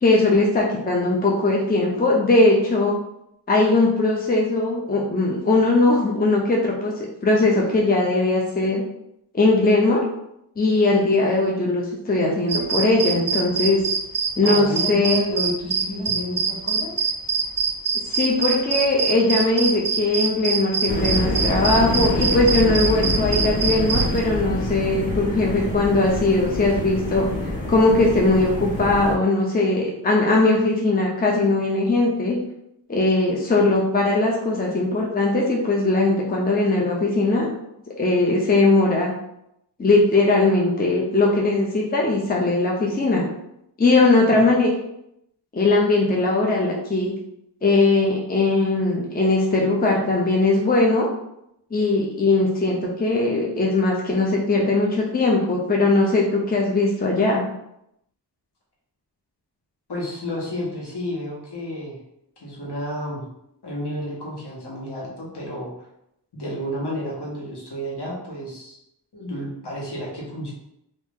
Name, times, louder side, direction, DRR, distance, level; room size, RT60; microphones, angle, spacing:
voice 1, 0.0-3.0 3.5-8.8 9.3-10.0 10.6-13.8 14.4-15.2 18.0-27.3 27.7-32.4 32.9-37.5 38.0-39.1 39.8-43.3 43.8-44.7 45.5-47.1 47.6-51.1 51.7-57.4, left 2 dB, 20° left, -2 dB, 0.6 m, -20 dB
sound 1, 12.5-24.2, right 5 dB, 50° right, 0.5 m, -23 dB
voice 2, 14.4-16.9 44.3-44.4 59.9-62.0 62.4-63.2 63.6-65.8 66.3-68.8 69.1-70.5, equal, 65° left, -4 dB, 1.3 m, -31 dB
sound 2, 20.9-29.1, left 1 dB, 90° left, 1.3 m, -26 dB
3.0 x 2.6 x 3.6 m, 0.80 s
wide cardioid pair, 85°, 44 cm